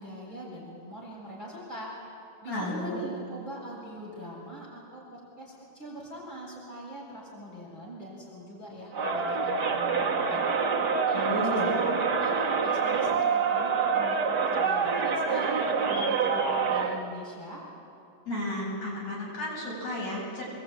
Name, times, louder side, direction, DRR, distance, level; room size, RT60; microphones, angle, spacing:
voice 1, 0.0-1.9 2.4-10.4 11.1-17.6, equal, 15° left, -4 dB, 7.2 m, -42 dB
voice 2, 2.5-3.0 11.1-11.7 18.3-20.4, left 1 dB, 65° left, -5 dB, 9.3 m, -32 dB
Crowd, 8.9-17.1, right 5 dB, 40° right, 1.8 m, -26 dB
25.5 x 21.5 x 9.3 m, 2.6 s
omnidirectional pair, 3.3 m